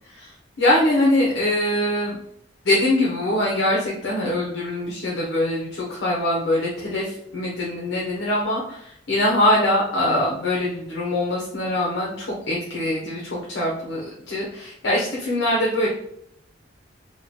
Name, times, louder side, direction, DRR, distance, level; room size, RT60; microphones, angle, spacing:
voice 1, 0.6-2.2 2.6-15.9, left 1 dB, 75° left, -4 dB, 0.8 m, -23 dB
3.2 x 2.1 x 3.8 m, 0.70 s
head